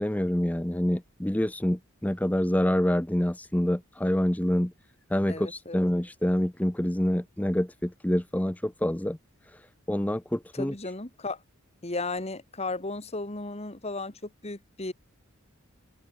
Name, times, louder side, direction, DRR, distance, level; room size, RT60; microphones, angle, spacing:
voice 1, 0.0-4.7 5.1-9.2 9.5-9.6 9.9-10.7, equal, 5° left, 0.7 m, -26 dB
voice 2, 5.3-5.8 10.5-11.4 11.8-14.9, left 2 dB, 30° left, 1.9 m, -35 dB
open air
head